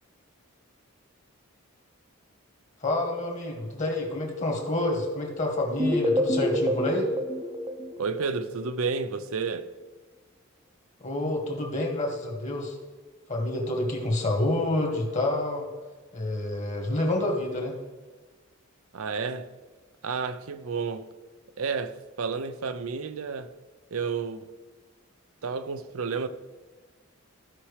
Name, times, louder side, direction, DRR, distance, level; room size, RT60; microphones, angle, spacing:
voice 1, 2.8-7.1 11.0-12.8 13.3-15.7 16.1-17.8, left 1 dB, 35° left, 1.8 m, -28 dB
sound 1, 5.8-8.7, left 1 dB, 20° right, 0.7 m, -28 dB
voice 2, 8.0-9.7 18.9-19.5 20.0-21.1 21.6-23.5 23.9-24.5 25.4-26.3, right 5 dB, 75° right, 0.5 m, -31 dB
14.5 x 5.8 x 3.3 m
head